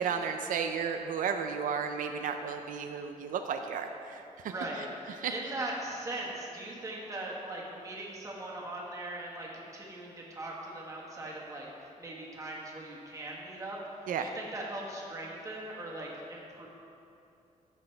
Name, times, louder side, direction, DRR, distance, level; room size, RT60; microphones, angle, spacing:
voice 1, 0.0-4.8 5.2-5.3 14.1-14.3, right 6 dB, 90° right, 6 dB, 0.5 m, -33 dB
voice 2, 4.5-13.8 14.2-16.7, right 1 dB, 25° right, -3 dB, 1.5 m, -40 dB
15.0 x 6.2 x 3.3 m, 2.7 s
wide cardioid pair, 165°, 13 cm